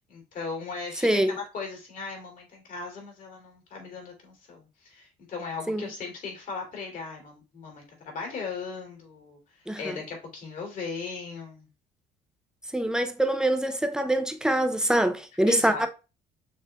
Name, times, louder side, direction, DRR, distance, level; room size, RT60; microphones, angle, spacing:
voice 1, 0.1-11.7 15.5-15.9, left 4 dB, 55° left, 2.9 m, -38 dB
voice 2, 1.0-1.3 5.7-5.8 9.7-10.0 12.7-15.9, right 1 dB, 5° right, 0.6 m, -24 dB
6.7 x 3.2 x 2.4 m
cardioid pair, 110°, 17 cm